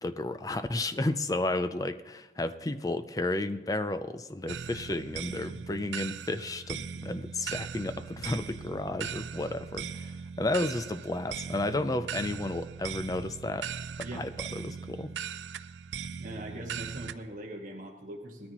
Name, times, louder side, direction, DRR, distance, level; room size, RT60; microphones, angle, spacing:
voice 1, 0.0-13.7 14.1-15.1, left 2 dB, 20° left, 11 dB, 0.5 m, -32 dB
sound 1, 4.5-17.2, right 7 dB, 90° right, 0.5 m, -39 dB
voice 2, 15.9-18.5, right 1 dB, 45° right, 0 dB, 1.7 m, -42 dB
19.5 x 13.5 x 3.0 m, 1.2 s
head